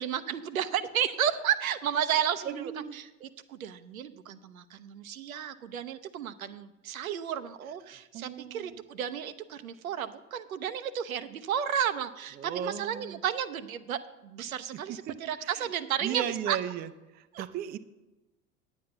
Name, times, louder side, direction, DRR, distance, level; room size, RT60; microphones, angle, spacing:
voice 1, 0.0-16.6, right 9 dB, 75° right, 12 dB, 0.7 m, -33 dB
voice 2, 2.4-3.0 8.1-8.8 12.4-13.2 14.9-15.7 16.0-17.8, right 9 dB, 25° right, 13 dB, 0.4 m, -36 dB
9.3 x 8.0 x 5.6 m, 1.1 s
figure-of-eight pair, 75°, 42 cm